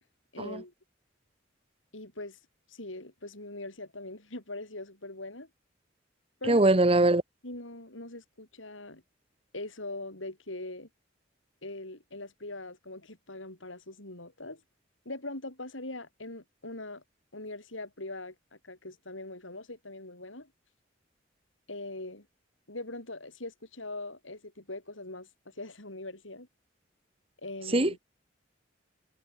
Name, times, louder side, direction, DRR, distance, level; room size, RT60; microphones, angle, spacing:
voice 1, 0.3-0.7 1.9-2.4 2.7-5.5 6.4-6.6 7.4-9.0 9.5-10.9 11.6-14.6 15.0-17.0 17.3-18.3 18.6-20.5 21.7-22.3 22.7-26.5 27.4-28.0, left 2 dB, 90° left, 7.7 m, -41 dB
voice 2, 6.5-7.2 27.7-28.0, right 2 dB, 30° right, 1.3 m, -22 dB
head